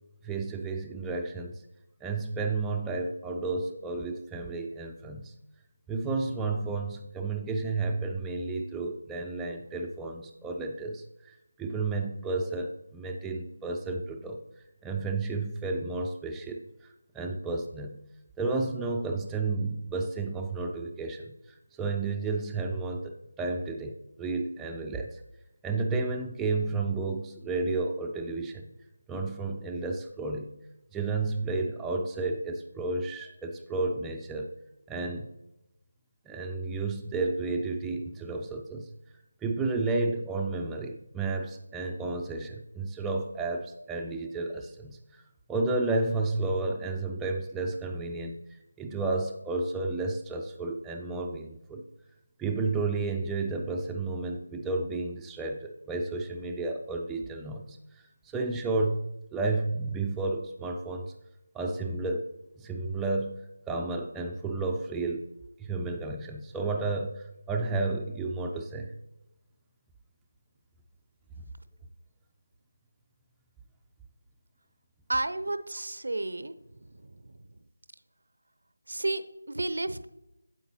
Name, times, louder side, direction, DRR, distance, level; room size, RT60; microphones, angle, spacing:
voice 1, 0.2-1.6 2.0-5.3 5.9-14.4 14.8-16.6 17.1-18.0 18.4-21.3 21.8-25.2 25.6-28.6 29.1-30.5 30.9-34.5 34.9-35.3 36.3-38.9 39.4-45.2 45.5-51.8 52.4-58.0 58.3-61.1 61.5-62.3 62.6-63.4 63.7-65.3 65.6-68.9, right 3 dB, 5° right, 2 dB, 0.3 m, -32 dB
voice 2, 75.1-76.5 78.9-80.1, right 2 dB, 65° right, 13 dB, 0.5 m, -31 dB
9.1 x 7.8 x 2.8 m, 0.92 s
figure-of-eight pair, 165°, 0 cm